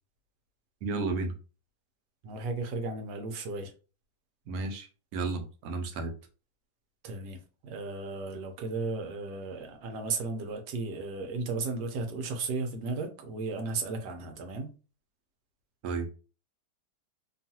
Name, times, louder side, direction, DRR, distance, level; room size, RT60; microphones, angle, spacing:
voice 1, 0.8-1.3 4.5-6.1 15.8-16.1, right 3 dB, 65° right, 4 dB, 1.1 m, -33 dB
voice 2, 2.2-3.7 7.0-14.7, right 3 dB, 85° right, 5 dB, 1.3 m, -35 dB
3.0 x 2.4 x 2.7 m, 0.35 s
omnidirectional pair, 1.8 m